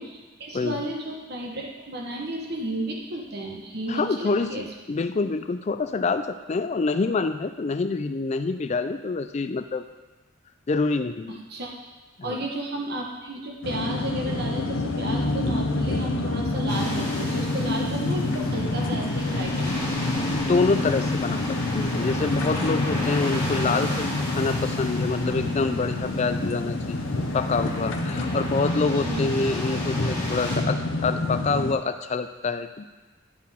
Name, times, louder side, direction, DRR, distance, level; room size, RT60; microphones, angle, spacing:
voice 1, 0.0-4.7 11.5-11.7 12.2-19.9 29.0-29.2, right 1 dB, 50° right, -1 dB, 1.2 m, -33 dB
voice 2, 3.9-4.6 4.9-9.8 10.7-11.4 12.2-12.4 20.1-27.0 27.3-32.9, left 4 dB, 30° left, 10 dB, 0.3 m, -26 dB
sound 1, 13.6-31.7, left 2 dB, 65° left, 0.7 m, -27 dB
sound 2, 16.7-30.6, left 1 dB, 15° left, 1.7 m, -35 dB
11.0 x 4.6 x 3.6 m, 1.2 s
head